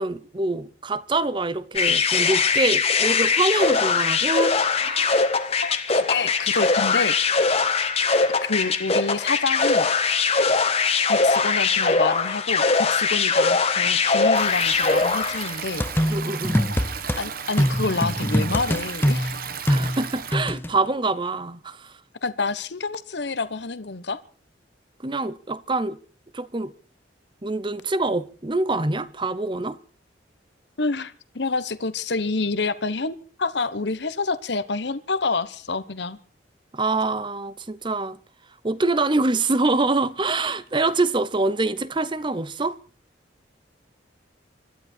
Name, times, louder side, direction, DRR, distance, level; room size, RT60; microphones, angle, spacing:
voice 1, 0.0-5.2 16.1-16.6 19.7-21.9 25.0-26.0 26.3-26.7 27.4-29.8 36.7-38.2 38.6-42.8, right 2 dB, 25° right, 0.8 m, -25 dB
sound 1, 1.8-15.6, left 4 dB, 35° left, 1.5 m, -21 dB
voice 2, 5.6-7.6 8.4-9.9 11.1-16.2 17.2-19.4 22.2-24.2 30.8-36.2, left 3 dB, 65° left, 1.1 m, -28 dB
Stream, 14.3-20.3, right 6 dB, 50° right, 1.3 m, -34 dB
sound 2, 15.8-17.2 17.6-20.7, equal, 10° left, 0.8 m, -23 dB
25.5 x 12.5 x 4.5 m
head